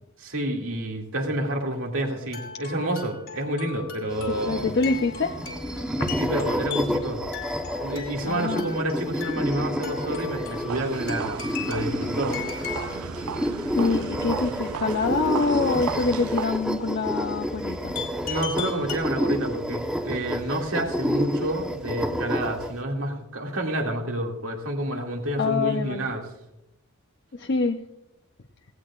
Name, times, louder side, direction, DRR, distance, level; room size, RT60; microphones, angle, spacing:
voice 1, 0.2-4.7 6.2-7.2 7.8-11.4 11.7-12.4 18.2-26.2, right 1 dB, 70° right, 1 dB, 2.3 m, -29 dB
sound 1, 2.1-13.1 18.0-19.0, left 7 dB, 70° left, 2.5 m, -38 dB
sound 2, 4.1-22.8, equal, 5° right, 1.0 m, -30 dB
voice 2, 4.3-5.4 6.0-6.1 8.2-8.7 13.7-18.0 25.4-26.1 27.3-27.8, left 4 dB, 55° left, 4 dB, 0.6 m, -25 dB
sound 3, 10.7-16.5, right 8 dB, 90° right, 0.4 m, -35 dB
17.5 x 17.5 x 2.4 m, 0.86 s
head